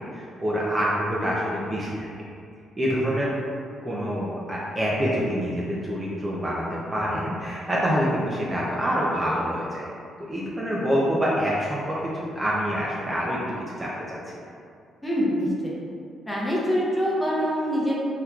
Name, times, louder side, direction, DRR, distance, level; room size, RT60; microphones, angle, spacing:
voice 1, 0.0-2.1 2.8-3.3 3.8-9.8 10.2-13.4 13.8-14.2, equal, 25° right, -6 dB, 0.5 m, -26 dB
voice 2, 15.0-15.7 16.3-17.9, equal, 10° left, -6 dB, 0.8 m, -24 dB
3.6 x 2.9 x 2.3 m, 2.4 s
cardioid pair, 90°, 0 cm